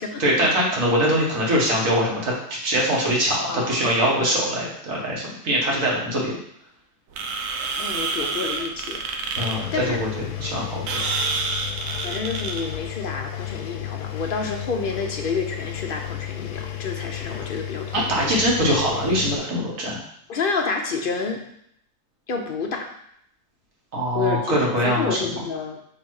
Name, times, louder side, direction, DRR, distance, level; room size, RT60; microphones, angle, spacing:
voice 1, 0.2-2.3 2.6-6.3 9.4-10.1 10.4-11.0 17.9-20.0 23.9-25.2, equal, 60° right, -3 dB, 1.9 m, -22 dB
voice 2, 3.5-3.9 4.2-4.3 5.7-5.9 7.8-9.0 9.7-10.0 12.0-18.3 20.3-21.4 22.3-22.9 24.1-24.5 24.8-25.8, left 4 dB, 60° left, 3 dB, 0.6 m, -29 dB
sound 1, 7.1-12.8, right 4 dB, 80° right, 1.2 m, -28 dB
Engine, 9.4-19.4, left 13 dB, 90° left, 1.2 m, -33 dB
6.4 x 3.1 x 4.7 m, 0.70 s
omnidirectional pair, 1.6 m